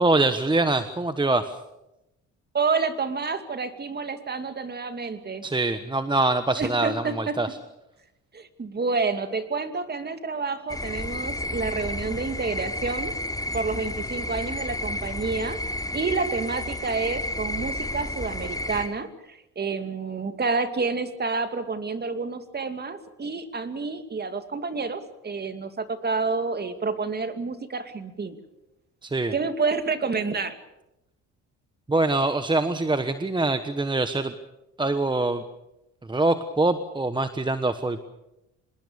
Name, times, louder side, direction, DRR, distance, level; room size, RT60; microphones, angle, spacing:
voice 1, 0.0-1.5 5.4-7.5 29.0-29.3 31.9-34.3 34.8-35.4 36.1-38.0, right 2 dB, 15° right, 10 dB, 1.2 m, -24 dB
voice 2, 2.5-5.4 6.6-7.4 8.3-13.2 13.5-15.6 15.9-28.4 29.3-30.6, right 4 dB, 30° right, 9 dB, 2.5 m, -29 dB
sound 1, 10.7-18.9, left 1 dB, 10° left, 3.1 m, -31 dB
25.5 x 20.5 x 7.0 m, 0.91 s
cardioid pair, 90°, 33 cm